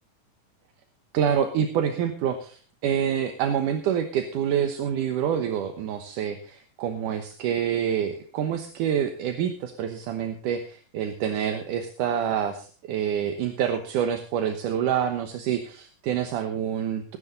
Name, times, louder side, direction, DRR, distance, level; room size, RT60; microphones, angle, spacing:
voice 1, 1.1-17.2, right 8 dB, 75° right, 6 dB, 2.6 m, -27 dB
20.0 x 9.8 x 3.9 m, 0.38 s
omnidirectional pair, 3.8 m